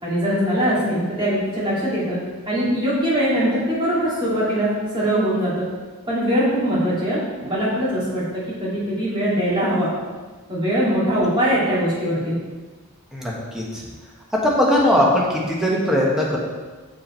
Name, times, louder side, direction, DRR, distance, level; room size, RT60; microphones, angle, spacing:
voice 1, 0.0-2.2 2.5-5.7 6.1-9.9 10.5-12.4, equal, 20° right, -8 dB, 2.5 m, -22 dB
voice 2, 13.1-13.8 14.4-16.4, left 1 dB, ahead, -4 dB, 1.2 m, -19 dB
7.2 x 5.4 x 4.4 m, 1.3 s
head